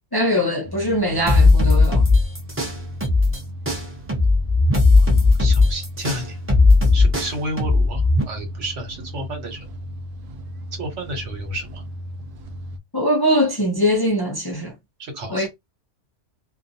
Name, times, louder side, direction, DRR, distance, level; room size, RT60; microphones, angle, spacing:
voice 1, 0.1-2.1 12.9-14.7 15.3-15.5, equal, 30° left, 0.4 m, -21 dB
sound 1, 0.6-12.8, equal, 60° right, 0.6 m, -36 dB
sound 2, 1.3-3.4 3.7-8.2, left 3 dB, 15° right, 0.6 m, -16 dB
voice 2, 5.0-6.4 6.9-9.7 10.8-11.8 15.0-15.5, right 1 dB, 85° right, 1.4 m, -31 dB
2.5 x 2.2 x 2.6 m
omnidirectional pair, 1.2 m